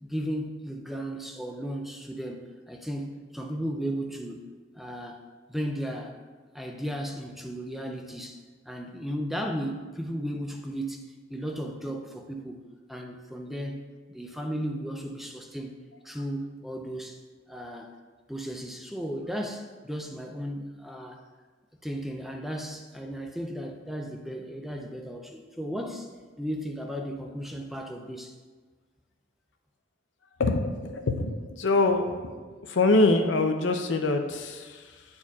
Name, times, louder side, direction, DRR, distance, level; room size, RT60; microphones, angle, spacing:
voice 1, 0.0-4.5 4.8-5.2 5.5-6.2 6.5-11.0 11.3-12.6 12.9-15.8 16.0-17.2 17.5-17.9 18.3-21.2 21.8-26.1 26.4-28.3, equal, ahead, 2 dB, 0.4 m, -35 dB
voice 2, 30.4-32.3 32.6-35.0, left 2 dB, 80° left, 5 dB, 0.6 m, -24 dB
9.6 x 4.4 x 2.4 m, 1.4 s
head